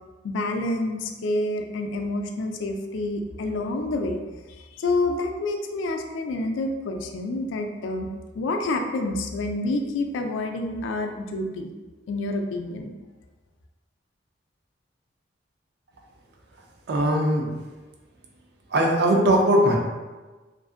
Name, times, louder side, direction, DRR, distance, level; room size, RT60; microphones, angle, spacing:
voice 1, 0.2-4.2 4.6-8.1 8.3-11.7 12.1-12.9, left 2 dB, 85° left, 4 dB, 0.3 m, -28 dB
voice 2, 16.9-17.5 18.7-19.8, right 1 dB, 60° right, 0 dB, 0.5 m, -20 dB
2.5 x 2.4 x 2.4 m, 1.2 s
head